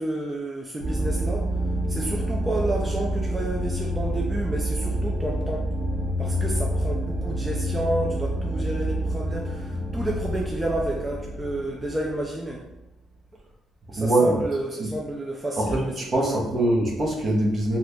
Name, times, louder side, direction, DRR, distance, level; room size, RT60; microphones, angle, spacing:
voice 1, 0.0-1.5 1.9-5.7 6.2-12.6 13.9-16.2 16.5-16.7, right 1 dB, 15° right, -2 dB, 0.5 m, -30 dB
sound 1, 0.8-12.7, equal, 70° right, 0.9 m, -28 dB
voice 2, 14.0-14.4 14.8-15.0 15.5-17.8, right 1 dB, 45° right, -1 dB, 0.9 m, -23 dB
2.8 x 2.4 x 3.4 m, 0.95 s
cardioid pair, 80°, 0 cm